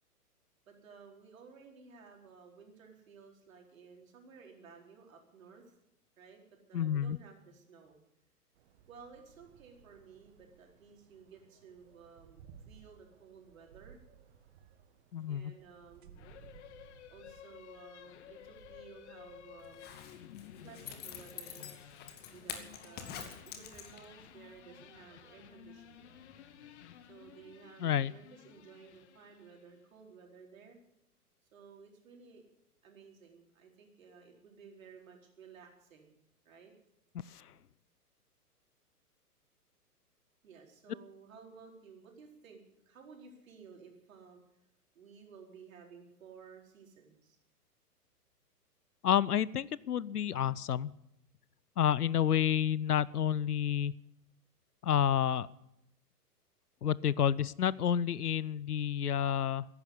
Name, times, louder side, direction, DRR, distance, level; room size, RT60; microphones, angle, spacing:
voice 1, 0.7-5.7 6.2-6.4 6.7-8.0 8.9-14.0 15.3-16.3 17.1-19.9 20.6-22.0 22.3-26.1 27.1-30.8 31.5-32.4 32.8-36.1 36.4-36.7 40.4-44.4 44.9-47.4, right 5 dB, 55° right, 1 dB, 4.5 m, -55 dB
voice 2, 6.7-7.2 15.1-15.5 27.8-28.1 37.3-37.5 49.0-50.9 51.8-53.9 54.8-55.5 56.8-59.7, left 9 dB, 70° left, 22 dB, 0.7 m, -29 dB
sound 1, 8.5-27.6, right 7 dB, 40° right, 1.6 m, -62 dB
sound 2, 16.2-29.8, left 11 dB, 45° left, 1.2 m, -54 dB
Zipper (clothing), 19.6-24.2 24.6-24.7, left 8 dB, 20° left, 1.7 m, -46 dB
15.5 x 11.0 x 8.3 m, 0.82 s
figure-of-eight pair, 115°, 47 cm